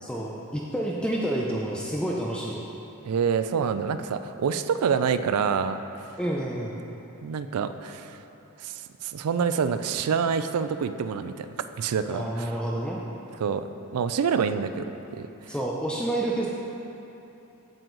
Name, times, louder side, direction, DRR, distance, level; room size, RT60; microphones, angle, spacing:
voice 1, 0.0-2.6 6.2-6.8 12.1-13.0 15.5-16.5, right 1 dB, 5° left, -3 dB, 0.5 m, -29 dB
voice 2, 3.0-5.8 7.2-8.2 8.6-11.5 11.8-12.5 13.4-15.5, right 6 dB, 85° right, 11 dB, 0.4 m, -27 dB
9.1 x 7.8 x 3.9 m, 3.0 s
head